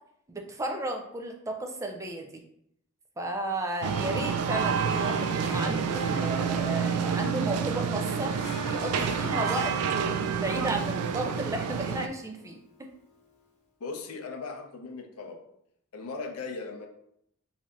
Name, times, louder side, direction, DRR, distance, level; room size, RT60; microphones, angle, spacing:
voice 1, 0.3-2.3 3.2-12.9, right 1 dB, 15° right, 3 dB, 0.4 m, -34 dB
sound 1, 3.8-12.1, right 6 dB, 90° right, 0.3 m, -28 dB
Harp, 4.7-13.3, left 4 dB, 30° left, 0.7 m, -45 dB
voice 2, 13.8-15.4 15.9-16.9, left 4 dB, 85° left, 3 dB, 0.6 m, -38 dB
3.2 x 2.6 x 3.8 m, 0.74 s
head